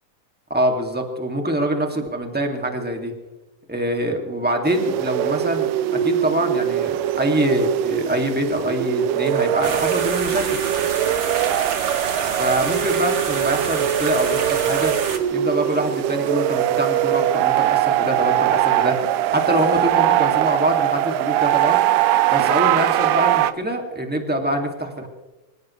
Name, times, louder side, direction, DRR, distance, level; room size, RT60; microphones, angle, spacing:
voice 1, 0.5-3.1 3.7-10.4 12.4-14.9 15.3-19.0 19.3-21.8 22.3-25.1, right 1 dB, 5° right, 2 dB, 1.6 m, -24 dB
sound 1, 4.7-23.5, right 12 dB, 85° right, 2.4 m, -21 dB
sound 2, 9.6-15.2, right 5 dB, 45° right, 1.8 m, -28 dB
25.5 x 16.5 x 3.2 m, 1.1 s
omnidirectional pair, 3.8 m